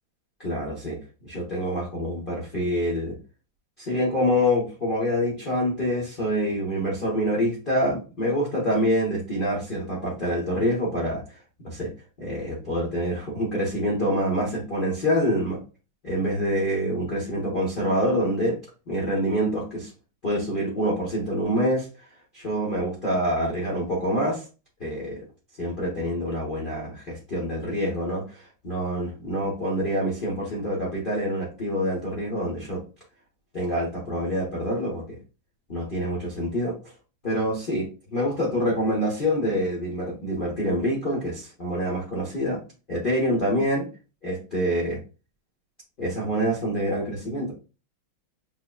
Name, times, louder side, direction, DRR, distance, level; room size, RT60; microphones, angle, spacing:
voice 1, 0.4-3.1 3.8-11.2 11.6-11.9 12.2-15.6 16.0-18.6 18.9-19.9 20.2-21.9 22.3-24.4 24.8-25.2 25.6-32.8 33.5-35.2 35.7-36.7 37.2-42.6 42.9-43.9 44.2-45.0 46.0-47.5, equal, 45° left, -5 dB, 0.6 m, -26 dB
6.0 x 2.1 x 2.2 m, 0.33 s
omnidirectional pair, 2.2 m